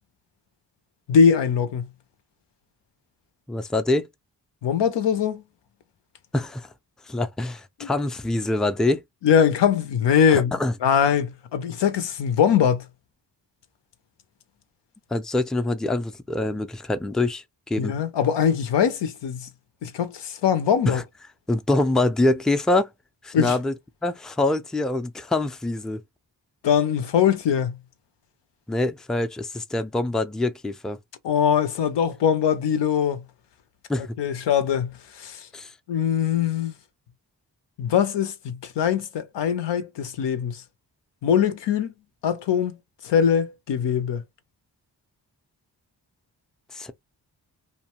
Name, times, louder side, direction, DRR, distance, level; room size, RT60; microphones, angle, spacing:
voice 1, 1.1-1.9 4.6-5.4 7.8-7.9 9.2-10.5 10.8-12.9 17.8-19.5 19.8-21.0 23.3-23.6 26.6-27.8 31.2-33.2 34.0-35.5 35.9-36.7 37.8-40.6 41.2-41.9 42.2-42.7 43.0-44.2, left 8 dB, 85° left, 0.6 m, -22 dB
voice 2, 3.5-4.1 6.3-6.7 7.1-9.0 10.3-10.7 15.1-17.9 20.8-21.0 21.5-22.9 23.2-23.7 24.0-26.0 28.7-31.0 33.9-34.1 35.5-35.7 46.7-46.9, left 2 dB, ahead, 0.4 m, -25 dB
2.6 x 2.2 x 2.9 m
cardioid pair, 55°, 41 cm